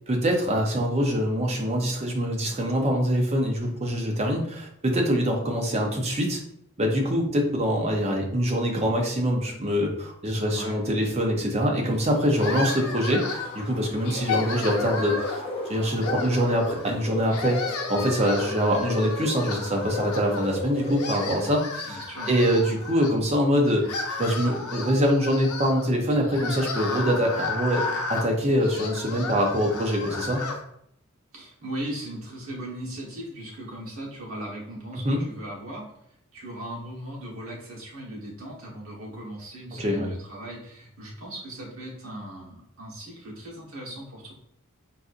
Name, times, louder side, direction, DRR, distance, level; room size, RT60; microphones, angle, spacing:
voice 1, 0.1-6.4 6.8-15.4 15.7-17.6 17.9-22.0 22.3-27.8 28.1-30.4 35.0-35.2 39.8-40.1, equal, 30° right, 0 dB, 0.6 m, -24 dB
voice 2, 10.4-10.8 21.8-22.3 31.3-35.9 36.3-44.3, right 1 dB, 70° right, -4 dB, 1.2 m, -38 dB
sound 1, 11.9-21.4, left 2 dB, 25° left, 0.5 m, -36 dB
sound 2, 12.4-13.7 14.0-15.5 16.0-16.9 17.3-20.5 20.8-23.1 23.6-30.6, left 3 dB, 85° left, 0.6 m, -33 dB
4.0 x 2.5 x 2.4 m, 0.72 s
head